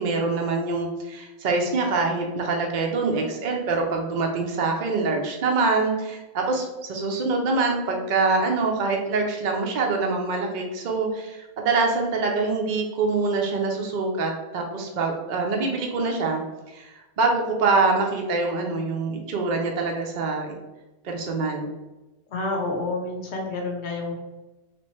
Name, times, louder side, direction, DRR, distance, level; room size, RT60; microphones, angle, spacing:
voice 1, 0.0-16.4 16.7-20.6 21.0-21.7, right 3 dB, 55° right, 1 dB, 0.6 m, -25 dB
voice 2, 22.3-24.1, left 2 dB, 85° left, 0 dB, 1.1 m, -29 dB
3.2 x 2.9 x 3.0 m, 1.1 s
omnidirectional pair, 1.1 m